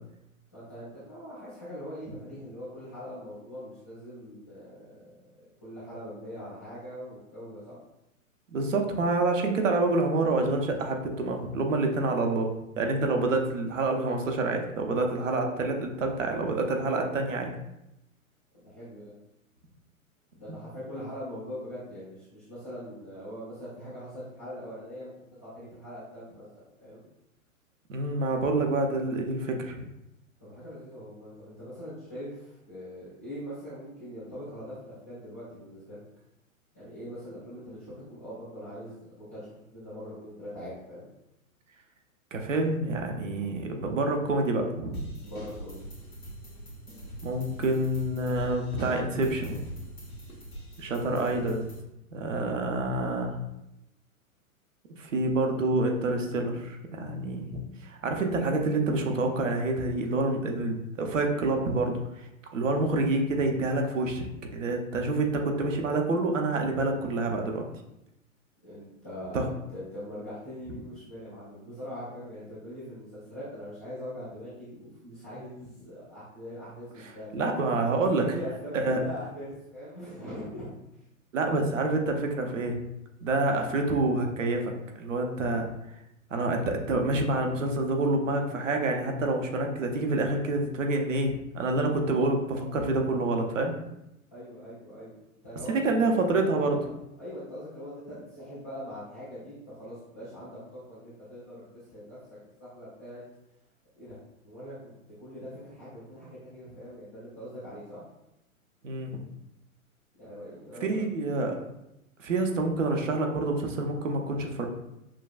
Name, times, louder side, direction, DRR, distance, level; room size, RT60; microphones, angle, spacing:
voice 1, 0.5-5.2 5.6-7.8 18.5-19.1 20.3-25.1 25.4-27.0 30.4-36.0 36.7-39.5 39.7-41.1 45.2-45.8 52.3-52.5 68.6-77.8 78.2-80.7 94.3-96.8 97.2-102.2 102.6-103.2 104.0-104.2 104.4-108.0 110.2-111.1, equal, 15° left, -13 dB, 0.3 m, -42 dB
voice 2, 8.5-17.5 27.9-29.9 42.3-45.0 47.2-49.7 50.8-51.7 52.1-53.4 55.0-62.3 62.5-67.6 69.3-69.5 77.0-78.2 78.7-79.0 81.3-82.8 83.2-84.7 85.0-85.7 86.3-93.8 95.7-96.8 108.8-109.2 110.8-111.6 112.2-114.7, right 2 dB, 60° right, 3 dB, 0.7 m, -27 dB
sound 1, 44.9-51.8, right 1 dB, 85° left, 1.2 m, -42 dB
5.8 x 2.3 x 2.3 m, 0.86 s
figure-of-eight pair, 110°, 42 cm